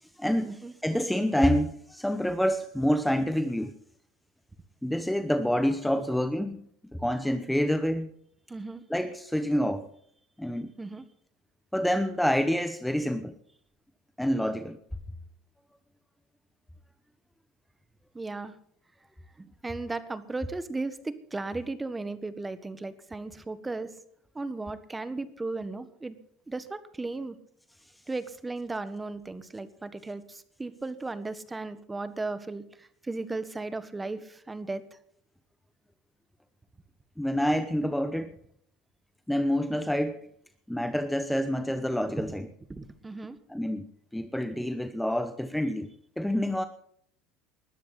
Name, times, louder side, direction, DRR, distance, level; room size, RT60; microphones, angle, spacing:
voice 1, 0.2-0.6 0.8-3.7 4.8-6.6 7.0-8.1 8.9-9.9 10.4-10.7 11.7-13.3 14.2-14.8 37.2-38.4 39.3-40.2 40.7-42.5 43.5-43.9 44.1-45.9 46.2-46.7, equal, 5° left, 1.0 m, -27 dB
voice 2, 8.5-8.8 10.8-11.1 18.1-18.6 19.4-23.9 24.3-26.2 26.5-27.3 28.1-34.8 42.7-43.4, right 3 dB, 15° right, 1.4 m, -36 dB
20.0 x 12.5 x 4.1 m
supercardioid pair, 105°, 0 cm